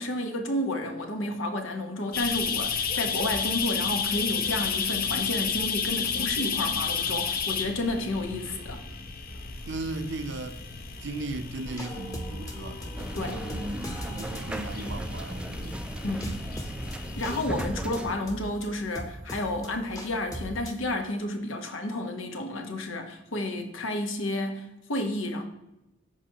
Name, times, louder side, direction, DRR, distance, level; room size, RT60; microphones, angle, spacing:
voice 1, 0.0-8.8 13.1-13.5 16.0-16.5 17.2-25.4, left 1 dB, 85° left, 1.2 m, -31 dB
sound 1, 2.1-17.4, left 6 dB, 50° left, 0.7 m, -32 dB
voice 2, 9.7-10.6 11.0-15.8, right 2 dB, 60° right, 0.6 m, -37 dB
sound 2, 11.7-20.9, equal, 20° left, 0.9 m, -40 dB
sound 3, 13.0-18.1, right 1 dB, 5° right, 0.4 m, -37 dB
13.5 x 4.9 x 2.9 m
head